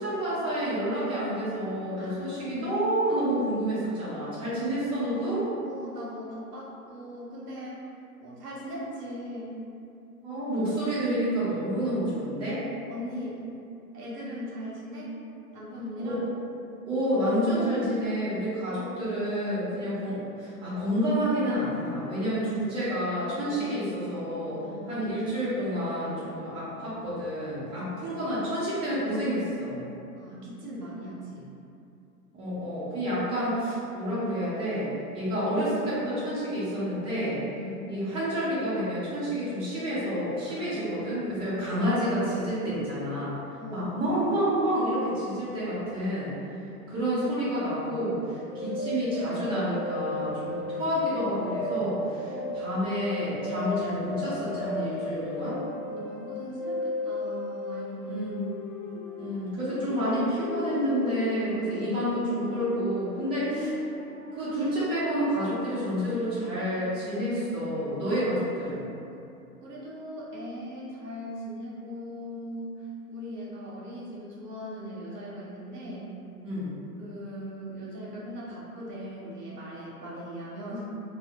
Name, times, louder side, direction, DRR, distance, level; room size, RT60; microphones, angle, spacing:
voice 1, 0.0-5.5 10.2-12.6 16.0-16.2 16.9-24.6 24.9-29.8 32.3-37.4 37.9-43.4 43.7-46.3 46.9-55.6 58.0-58.5 59.2-63.8 64.3-68.9 76.4-76.7, equal, 10° right, -11 dB, 0.6 m, -29 dB
voice 2, 5.6-7.8 8.2-9.6 12.9-13.5 13.9-15.2 15.5-16.2 19.7-20.0 23.5-23.7 24.6-24.9 27.6-28.2 30.2-31.5 37.5-37.9 40.5-41.5 43.6-43.9 52.3-52.6 55.8-58.2 69.6-76.1 77.0-80.9, equal, 85° right, -6 dB, 0.8 m, -39 dB
sound 1, 48.5-65.9, left 1 dB, 30° left, 1.0 m, -36 dB
2.2 x 2.0 x 2.7 m, 2.6 s
figure-of-eight pair, 105°, 46 cm